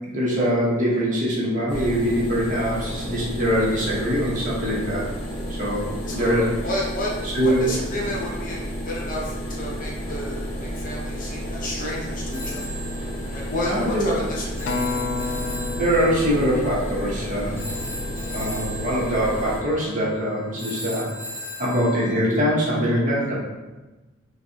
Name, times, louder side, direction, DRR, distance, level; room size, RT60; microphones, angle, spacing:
voice 1, 0.1-5.1 5.6-6.5 7.2-7.6 13.3-14.1 15.7-17.6 18.3-21.1 21.6-23.4, equal, 40° right, -6 dB, 1.2 m, -23 dB
sound 1, 1.7-19.6, equal, 25° left, 1.3 m, -31 dB
voice 2, 6.1-7.1 7.4-8.6 8.8-12.7 13.3-14.8, left 1 dB, 40° left, -3 dB, 0.9 m, -31 dB
Telephone, 12.3-22.1, left 1 dB, 15° right, 0.8 m, -38 dB
Acoustic guitar, 14.7-19.1 19.7-19.9, left 4 dB, 60° left, 0.3 m, -33 dB
6.1 x 2.5 x 2.8 m, 1.1 s
head